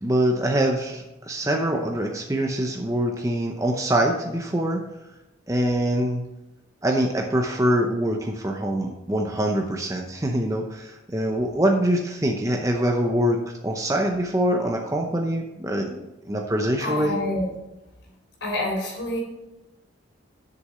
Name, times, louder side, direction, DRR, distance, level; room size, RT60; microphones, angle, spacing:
voice 1, 0.0-4.8 5.5-6.2 6.8-13.4 13.6-16.0 16.3-17.2, right 1 dB, 15° right, 2 dB, 0.7 m, -24 dB
voice 2, 16.8-17.5 18.4-19.2, left 1 dB, 70° left, -1 dB, 3.8 m, -27 dB
7.8 x 6.8 x 5.5 m, 0.98 s
head